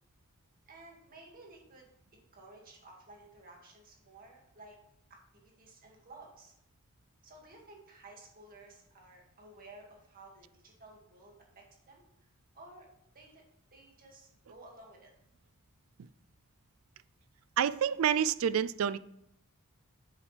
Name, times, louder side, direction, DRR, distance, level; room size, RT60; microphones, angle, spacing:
voice 1, 0.7-4.8 5.1-6.5 7.2-12.0 12.5-12.9 13.1-13.4 13.7-15.1, right 2 dB, 45° right, 0 dB, 2.1 m, -54 dB
voice 2, 17.6-19.0, right 8 dB, 70° right, 16 dB, 0.4 m, -28 dB
8.2 x 8.0 x 3.3 m, 0.76 s
head